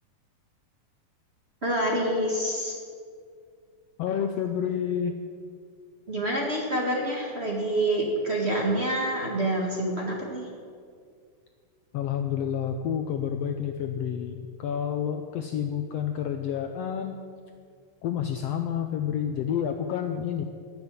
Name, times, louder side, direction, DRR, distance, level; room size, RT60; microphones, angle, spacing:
voice 1, 1.6-2.7 6.1-10.5, right 1 dB, 25° right, -1 dB, 1.5 m, -27 dB
voice 2, 4.0-5.2 11.9-17.2 18.0-20.4, left 8 dB, 85° left, 6 dB, 1.4 m, -29 dB
15.0 x 7.0 x 9.7 m, 2.2 s
omnidirectional pair, 3.7 m